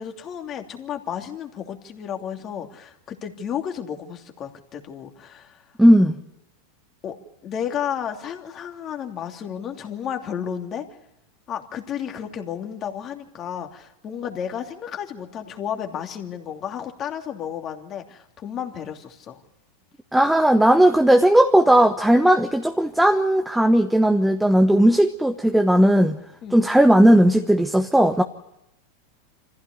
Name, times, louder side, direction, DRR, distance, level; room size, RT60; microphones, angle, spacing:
voice 1, 0.0-5.6 7.0-7.2 7.4-10.9 11.5-19.4 26.4-26.6, left 8 dB, 35° left, 4 dB, 2.8 m, -32 dB
voice 2, 5.8-6.2 20.1-26.2 26.5-28.2, right 1 dB, 5° right, 5 dB, 1.2 m, -16 dB
25.0 x 15.5 x 9.7 m, 0.86 s
hypercardioid pair, 105°, 0 cm